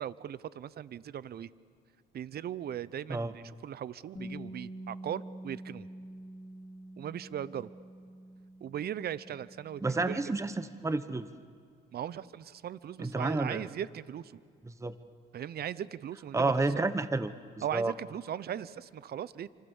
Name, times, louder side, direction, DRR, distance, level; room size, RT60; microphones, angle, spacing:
voice 1, 0.0-1.5 2.1-5.9 7.0-7.7 8.6-10.2 11.9-14.4 15.3-16.5 17.6-19.5, right 10 dB, 55° right, 18 dB, 0.8 m, -38 dB
Bass guitar, 4.2-10.4, right 1 dB, 20° left, 2.3 m, -46 dB
voice 2, 9.8-11.3 13.0-13.7 14.7-15.0 16.3-17.9, right 3 dB, 15° right, 12 dB, 1.1 m, -30 dB
28.5 x 26.0 x 7.3 m, 2.1 s
cardioid pair, 80°, 19 cm